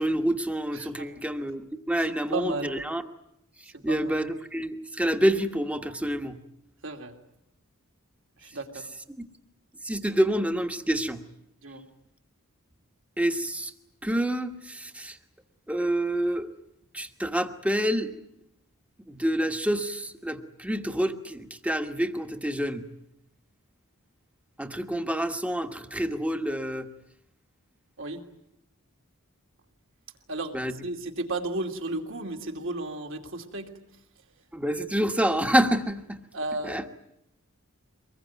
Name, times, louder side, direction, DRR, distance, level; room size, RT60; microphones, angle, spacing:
voice 1, 0.0-3.0 3.8-6.4 9.2-9.3 9.8-11.2 13.2-13.7 14.0-15.2 15.7-16.5 16.9-18.1 19.1-22.8 24.6-26.9 30.5-30.8 34.5-36.2 36.6-36.9, right 1 dB, 5° right, 7 dB, 1.3 m, -27 dB
voice 2, 0.7-1.1 2.3-2.7 3.9-4.1 6.8-7.1 8.4-8.9 11.6-11.8 28.0-28.2 30.3-30.6 30.8-33.7 36.3-36.8, right 2 dB, 60° right, 3 dB, 2.8 m, -33 dB
24.5 x 21.0 x 9.4 m, 0.80 s
head